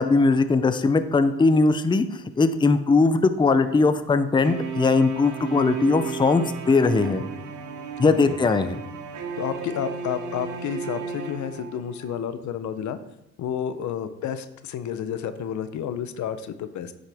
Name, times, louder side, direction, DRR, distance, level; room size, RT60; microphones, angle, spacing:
voice 1, 0.0-7.2 8.0-8.8, left 3 dB, 15° left, 10 dB, 0.5 m, -20 dB
sound 1, 4.4-12.2, right 5 dB, 85° right, 1.1 m, -34 dB
voice 2, 8.0-8.4 9.4-13.0 13.4-16.9, left 8 dB, 70° left, 11 dB, 0.7 m, -31 dB
9.2 x 6.3 x 3.5 m, 0.87 s
cardioid pair, 90°, 30 cm